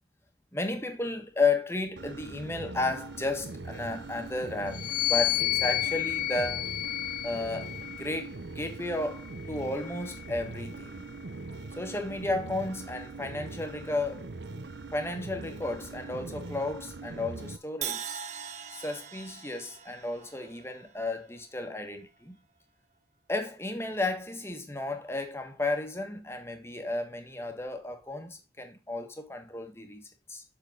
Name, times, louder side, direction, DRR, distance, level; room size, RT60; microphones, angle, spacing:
voice 1, 0.5-6.7 7.2-11.0 11.8-14.3 14.9-18.1 18.7-22.4 23.3-30.4, left 2 dB, 15° left, 1.4 m, -33 dB
sound 1, 2.0-17.6, right 3 dB, 70° right, 0.8 m, -42 dB
sound 2, 4.7-8.3 9.1-10.7, left 16 dB, 45° left, 0.6 m, -31 dB
Crash cymbal, 17.8-21.8, right 8 dB, 40° right, 0.8 m, -41 dB
7.8 x 6.2 x 3.8 m
head